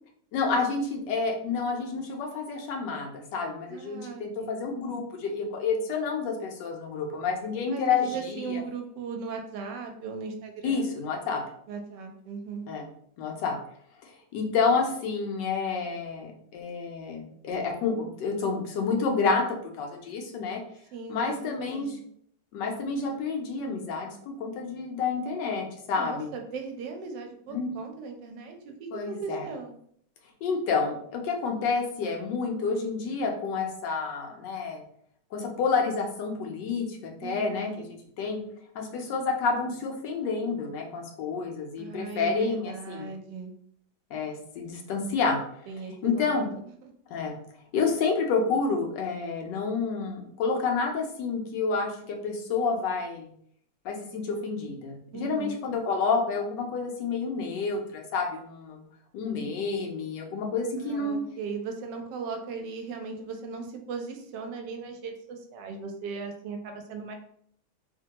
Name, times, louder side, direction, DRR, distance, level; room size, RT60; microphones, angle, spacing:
voice 1, 0.3-8.6 10.6-11.4 12.7-12.8 13.2-13.6 14.0-20.6 21.1-21.9 22.5-26.3 27.5-27.7 28.9-29.5 30.4-34.8 35.3-37.7 38.2-38.4 38.7-43.1 44.1-45.4 46.0-46.5 47.1-47.4 47.7-53.3 53.8-58.8 59.1-61.2, left 4 dB, 85° left, 1 dB, 1.3 m, -29 dB
voice 2, 3.7-4.6 7.7-10.9 11.7-12.7 20.9-22.0 25.9-29.7 37.2-37.9 41.8-43.5 45.7-46.5 46.8-46.9 55.1-55.6 60.8-67.1, right 5 dB, 85° right, 4 dB, 1.2 m, -38 dB
3.2 x 2.1 x 2.8 m, 0.66 s
omnidirectional pair, 1.8 m